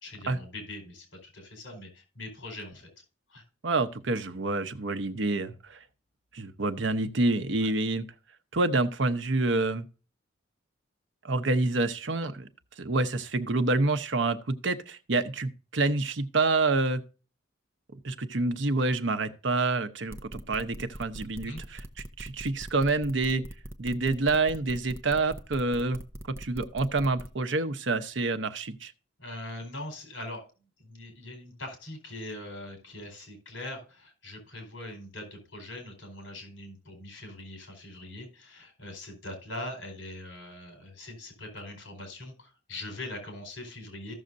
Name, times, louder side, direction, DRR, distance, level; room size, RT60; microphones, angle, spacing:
voice 1, 0.0-2.9 3.3-3.4 21.4-21.6 29.2-30.5 30.8-44.1, left 1 dB, 70° left, 4.5 m, -42 dB
voice 2, 3.6-5.8 6.3-8.0 8.5-9.9 11.2-12.5 12.8-17.0 18.0-21.8 22.2-23.5 23.8-26.0 26.4-28.9, right 3 dB, 65° right, 0.8 m, -27 dB
sound 1, 20.1-27.3, right 1 dB, 15° right, 0.7 m, -41 dB
15.0 x 6.4 x 2.6 m
head